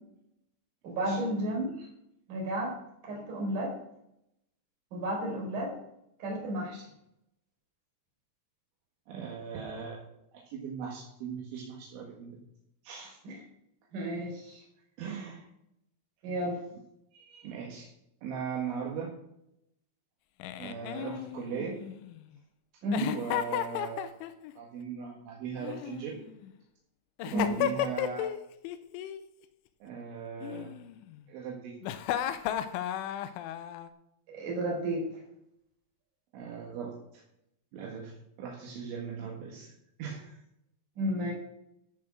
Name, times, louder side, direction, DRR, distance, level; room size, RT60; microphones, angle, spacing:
voice 1, 0.8-1.9 2.3-2.8 3.0-3.7 4.9-5.7 6.2-6.8 13.2-13.4 13.9-14.6 16.2-16.6 22.8-23.1 27.3-27.6 34.3-35.0 41.0-41.3, right 1 dB, 45° right, -2 dB, 5.3 m, -32 dB
voice 2, 9.1-10.0 10.3-12.4 12.8-13.2 15.0-15.5 17.1-17.9 18.2-19.1 20.6-21.8 23.1-24.1 24.6-26.2 27.2-28.3 29.8-30.8 31.3-31.8 36.3-37.2 37.7-39.7 40.0-40.4, right 6 dB, 75° right, -1 dB, 4.0 m, -39 dB
Giggle, 20.4-22.2 22.9-24.5 25.6-26.5 27.2-28.4 28.7-29.2 30.4-31.2 31.8-33.9, left 11 dB, 90° left, 3.1 m, -34 dB
13.5 x 6.3 x 6.2 m, 0.80 s
omnidirectional pair, 5.6 m